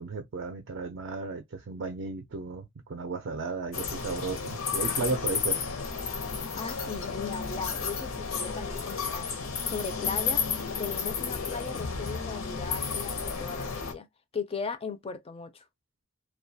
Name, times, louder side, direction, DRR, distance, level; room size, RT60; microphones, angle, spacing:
voice 1, 0.0-5.7, right 3 dB, 55° right, 0.4 m, -34 dB
sound 1, 3.7-13.9, left 5 dB, 75° left, 0.6 m, -32 dB
voice 2, 6.6-9.3 9.6-10.5 10.8-14.1 14.3-15.6, left 5 dB, 30° left, 0.4 m, -37 dB
2.2 x 2.2 x 2.6 m
head